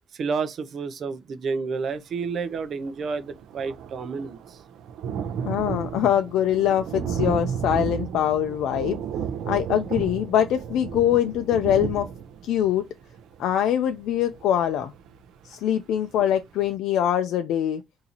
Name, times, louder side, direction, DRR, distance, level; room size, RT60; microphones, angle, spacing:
voice 1, 0.1-4.6, right 5 dB, 45° right, 0.5 m, -30 dB
Thunder, 2.5-2.6 2.9-15.5 16.0-16.1 16.4-16.5, right 7 dB, 90° right, 0.5 m, -33 dB
voice 2, 5.4-9.0 9.5-12.1 12.4-12.8 13.4-14.9 15.5-17.8, left 10 dB, 90° left, 0.4 m, -23 dB
3.9 x 2.7 x 2.8 m
cardioid pair, 160°, 0 cm